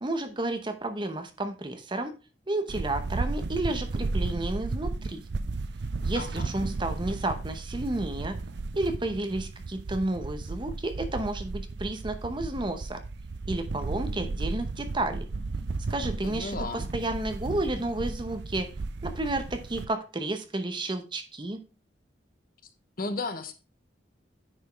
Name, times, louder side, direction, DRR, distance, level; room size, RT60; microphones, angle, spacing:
voice 1, 0.0-2.1 2.5-5.2 6.0-8.4 8.7-13.0 13.5-15.3 15.9-18.7 19.0-21.6, right 2 dB, 25° right, 8 dB, 0.9 m, -31 dB
sound 1, 2.7-19.9, right 3 dB, 65° right, 0.5 m, -34 dB
voice 2, 6.1-6.5 16.2-16.9 23.0-23.5, left 3 dB, 50° left, 8 dB, 1.0 m, -34 dB
9.9 x 5.2 x 3.4 m, 0.32 s
head